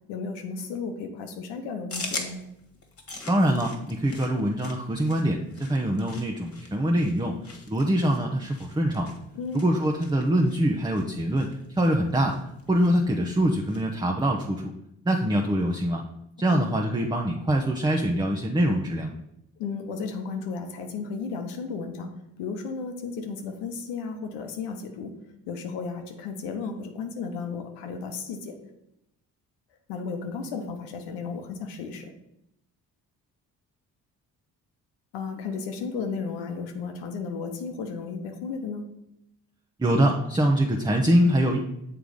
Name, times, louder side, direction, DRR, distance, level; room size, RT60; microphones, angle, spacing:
voice 1, 0.1-2.4 9.3-9.6 16.5-16.7 19.6-22.1 22.4-25.2 25.5-28.6 29.9-32.1 35.1-38.9, left 5 dB, 90° left, 5 dB, 1.0 m, -34 dB
sound 1, 1.9-13.9, left 3 dB, 35° left, 1.6 m, -43 dB
voice 2, 3.3-7.4 7.7-9.1 9.5-12.4 12.7-14.7 15.0-16.0 16.4-19.1 39.8-41.6, right 1 dB, 10° right, 1 dB, 0.8 m, -24 dB
6.8 x 3.9 x 5.0 m, 0.82 s
supercardioid pair, 55°, 40 cm